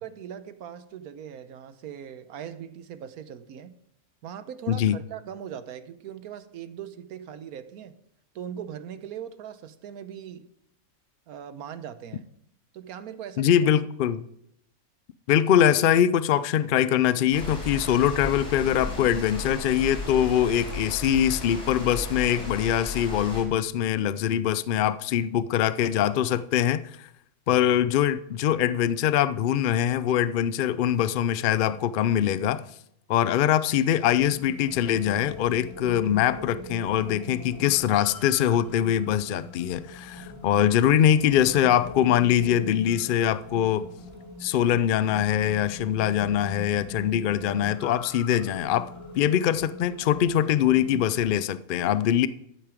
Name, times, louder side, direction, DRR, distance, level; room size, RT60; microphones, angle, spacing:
voice 1, 0.0-3.7 4.2-8.0 8.3-10.5 11.3-12.3 12.7-13.5, right 9 dB, 85° right, 1.3 m, -40 dB
voice 2, 4.7-5.0 13.4-14.2 15.3-26.8 27.5-32.6 33.1-43.9 44.4-48.9 49.2-52.3, left 10 dB, 90° left, 0.4 m, -23 dB
sound 1, 17.3-23.4, left 2 dB, 55° left, 4.8 m, -35 dB
sound 2, 34.0-51.3, left 2 dB, 20° left, 2.5 m, -42 dB
12.5 x 8.9 x 5.0 m
omnidirectional pair, 1.5 m